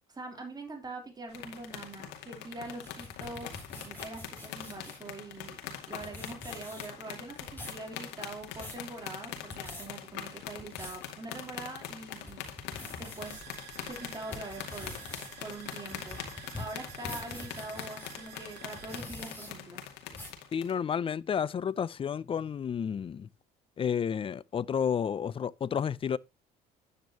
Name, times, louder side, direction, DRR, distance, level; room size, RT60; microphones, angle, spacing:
voice 1, 0.1-3.5 3.8-5.6 5.9-12.4 13.0-13.5 13.9-15.0 15.4-16.2 16.6-19.8, right 2 dB, 25° right, 3.4 m, -43 dB
sound 1, 1.3-20.7, left 9 dB, 90° left, 2.3 m, -43 dB
sound 2, 2.7-5.1 5.7-5.8 6.0-7.1 7.4-7.8 8.3-8.8 9.4-9.9 10.4-11.1 11.6-11.7 12.1-13.4 13.9-18.1 18.7-19.5 20.1-20.4, left 2 dB, 10° left, 6.6 m, -45 dB
sound 3, 13.2-19.0, right 10 dB, 75° right, 3.5 m, -50 dB
voice 2, 20.5-23.3 23.8-26.2, left 7 dB, 30° left, 0.5 m, -31 dB
10.0 x 9.4 x 2.9 m
cardioid pair, 110°, 17 cm